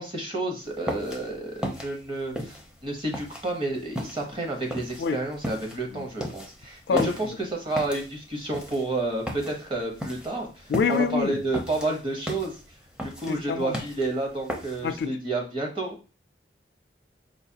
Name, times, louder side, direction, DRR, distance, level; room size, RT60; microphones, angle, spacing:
voice 1, 0.0-12.6 13.0-16.0, right 2 dB, 30° right, 0.9 m, -30 dB
sound 1, 0.7-15.0, equal, 5° right, 0.5 m, -35 dB
voice 2, 10.7-11.4 13.3-13.7 14.8-15.1, left 5 dB, 65° left, 0.3 m, -26 dB
4.7 x 2.3 x 2.8 m
head